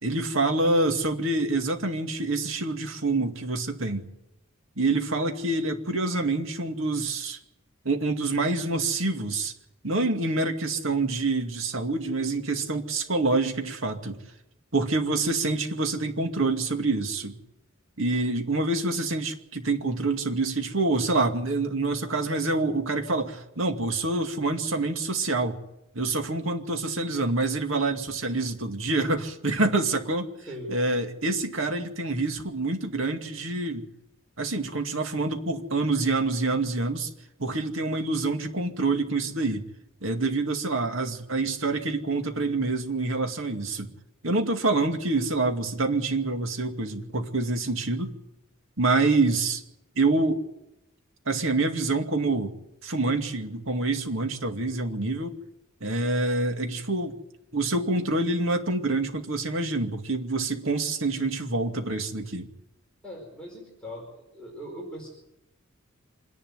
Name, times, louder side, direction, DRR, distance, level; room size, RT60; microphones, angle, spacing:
voice 1, 0.0-4.1 4.8-7.4 7.8-9.5 9.8-14.2 14.7-17.4 18.0-25.6 25.9-30.3 30.7-33.8 34.4-37.1 37.4-39.6 40.0-43.9 44.2-48.1 48.8-49.6 50.0-50.4 51.3-52.5 52.8-55.4 55.8-57.2 57.5-62.5, right 2 dB, 70° right, 5 dB, 2.3 m, -26 dB
voice 2, 63.0-65.1, equal, 5° left, -2 dB, 4.9 m, -40 dB
26.0 x 11.0 x 9.6 m, 0.90 s
head